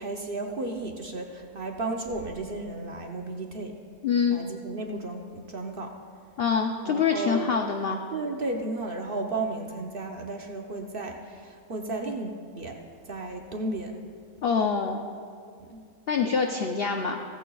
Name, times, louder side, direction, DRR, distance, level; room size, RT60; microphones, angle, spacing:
voice 1, 0.0-3.8 4.3-5.9 6.8-7.6 8.1-12.8 13.1-14.0 15.6-15.8, right 2 dB, 45° right, 2 dB, 0.8 m, -34 dB
voice 2, 4.0-4.4 6.4-8.0 14.4-15.0 16.1-17.2, left 6 dB, 55° left, 3 dB, 0.7 m, -25 dB
16.5 x 15.0 x 2.3 m, 2.2 s
omnidirectional pair, 1.6 m